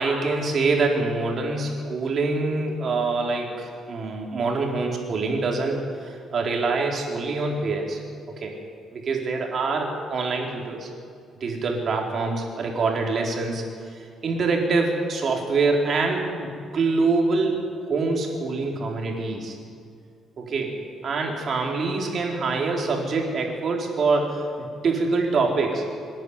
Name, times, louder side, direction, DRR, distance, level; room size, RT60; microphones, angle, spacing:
voice 1, 0.0-8.0 8.4-8.5 8.9-10.9 11.4-13.6 14.2-19.6 20.4-20.8 21.0-25.8, right 3 dB, 50° right, 0 dB, 4.0 m, -25 dB
26.0 x 10.5 x 9.7 m, 2.4 s
cardioid pair, 115°, 0 cm